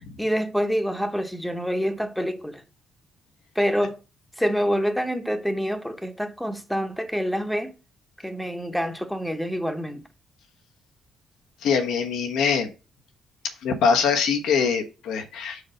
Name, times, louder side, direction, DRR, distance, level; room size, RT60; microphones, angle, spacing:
voice 1, 0.2-2.6 3.5-4.0 4.4-7.7 8.2-10.0, equal, ahead, 1.1 m, -26 dB
voice 2, 11.6-12.7 13.6-15.6, left 6 dB, 80° left, 1.1 m, -23 dB
5.3 x 4.8 x 6.3 m
cardioid pair, 90°, 0 cm